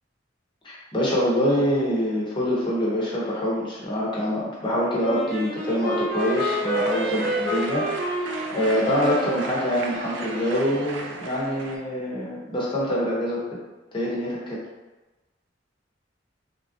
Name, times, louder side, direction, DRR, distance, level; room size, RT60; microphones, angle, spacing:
voice 1, 0.6-13.6 13.9-14.6, equal, 25° left, -6 dB, 0.8 m, -25 dB
Wind instrument woodwind instrument, 5.0-9.7, right 1 dB, 40° right, 1.0 m, -29 dB
sound 1, 6.2-11.8, right 3 dB, 70° right, 0.4 m, -35 dB
3.0 x 2.4 x 2.6 m, 1.1 s
head